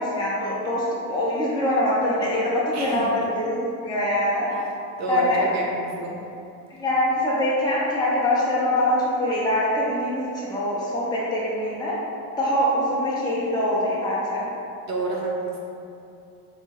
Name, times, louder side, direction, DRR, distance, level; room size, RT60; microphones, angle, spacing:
voice 1, 0.0-4.5 5.1-5.5 6.8-12.0 12.4-14.5, left 1 dB, 10° left, -8 dB, 0.8 m, -24 dB
voice 2, 2.7-3.3 5.0-6.2 14.9-15.6, right 2 dB, 35° right, -2 dB, 0.5 m, -28 dB
4.5 x 2.2 x 2.7 m, 2.6 s
supercardioid pair, 80°, 48 cm